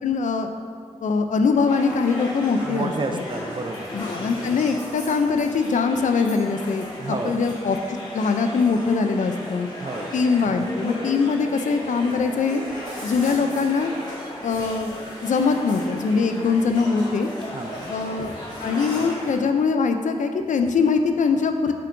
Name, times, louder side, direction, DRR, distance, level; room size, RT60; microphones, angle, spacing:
voice 1, 0.0-0.5 1.0-3.2 3.9-6.9 7.2-9.7 10.1-12.6 13.0-13.9 14.4-17.3 17.9-18.3 18.6-21.7, left 4 dB, 90° left, 6 dB, 0.4 m, -22 dB
sound 1, 1.7-19.3, left 1 dB, 35° left, 1.5 m, -35 dB
voice 2, 2.6-3.9 7.0-7.4 9.8-10.1 17.5-17.9, right 3 dB, 40° right, 6 dB, 0.5 m, -30 dB
6.9 x 5.7 x 2.6 m, 2.3 s
wide cardioid pair, 100°, 12 cm